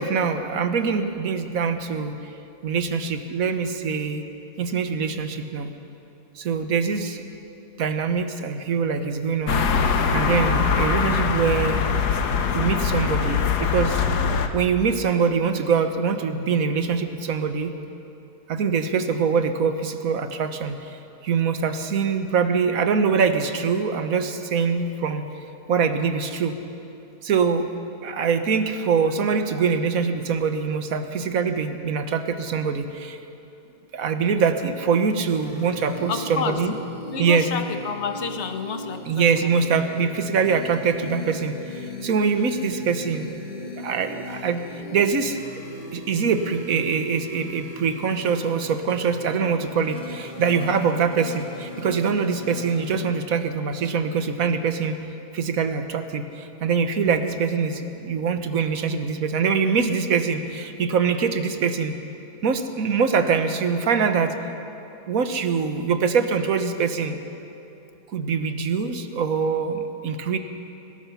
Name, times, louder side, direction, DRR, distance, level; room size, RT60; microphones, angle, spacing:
voice 1, 0.0-2.1 2.6-4.2 4.6-5.7 6.3-7.2 7.8-11.8 12.5-14.0 14.5-17.7 18.5-25.2 25.7-26.5 27.2-27.7 28.0-33.2 33.9-36.7 37.2-37.5 39.1-43.3 43.6-44.6 44.9-45.4 45.9-55.0 55.3-61.9 62.4-64.3 65.1-67.2 68.1-70.4, right 5 dB, 65° right, 8 dB, 1.5 m, -24 dB
sound 1, 9.5-14.5, left 6 dB, 90° left, 1.6 m, -22 dB
sound 2, 35.3-53.0, left 1 dB, 30° left, 2.3 m, -39 dB
voice 2, 36.1-36.6 37.1-39.5, left 6 dB, 50° left, 7 dB, 1.3 m, -30 dB
24.0 x 19.0 x 5.7 m, 2.8 s
omnidirectional pair, 1.7 m